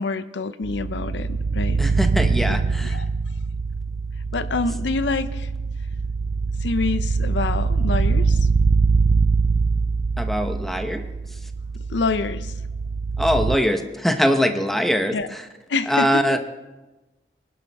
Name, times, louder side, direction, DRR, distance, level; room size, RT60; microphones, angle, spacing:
voice 1, 0.0-1.8 2.5-3.1 4.3-5.5 6.6-8.5 11.9-12.6 15.1-15.3 15.7-16.4, left 3 dB, 85° left, 12 dB, 0.7 m, -27 dB
sound 1, 0.6-13.6, right 4 dB, 45° right, 0.4 m, -23 dB
voice 2, 1.8-3.0 10.2-11.5 13.2-15.5 15.9-16.4, equal, ahead, 6 dB, 0.9 m, -23 dB
24.5 x 11.5 x 3.5 m, 1.1 s
head